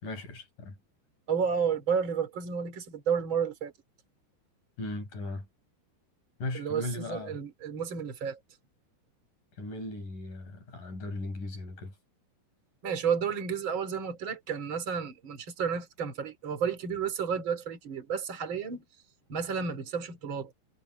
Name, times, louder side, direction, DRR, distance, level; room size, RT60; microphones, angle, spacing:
voice 1, 0.0-0.7 4.8-5.4 6.4-7.4 9.6-11.9, left 2 dB, 45° left, 8.4 m, -37 dB
voice 2, 1.3-3.7 6.5-8.4 12.8-18.8 19.3-20.5, right 6 dB, 30° right, 3.5 m, -31 dB
omnidirectional pair, 5.4 m